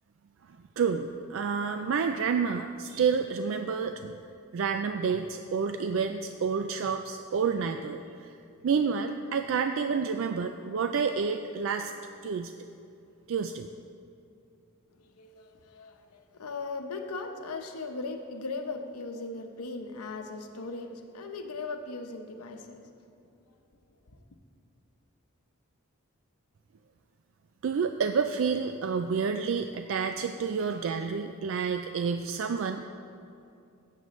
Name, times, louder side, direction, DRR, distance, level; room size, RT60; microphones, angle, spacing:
voice 1, 0.8-4.2 4.5-8.3 8.6-11.9 12.2-12.5 13.3-13.7 27.6-32.8, right 5 dB, 60° right, 7 dB, 0.3 m, -29 dB
voice 2, 15.0-22.8 24.1-24.2, left 3 dB, 85° left, 5 dB, 0.8 m, -38 dB
16.0 x 7.6 x 3.1 m, 2.6 s
head